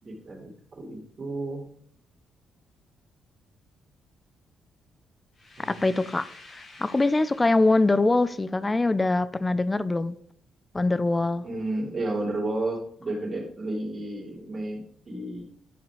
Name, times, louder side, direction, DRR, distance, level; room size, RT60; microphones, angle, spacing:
voice 1, 0.0-1.6 5.6-5.9 11.4-15.4, right 2 dB, 40° right, 3.1 m, -32 dB
sound 1, 5.3-8.1, left 2 dB, 45° left, 3.1 m, -50 dB
voice 2, 5.6-6.3 6.5-10.2 10.7-11.5, left 2 dB, 20° left, 0.6 m, -23 dB
11.0 x 4.9 x 4.9 m
cardioid pair, 90°, 0 cm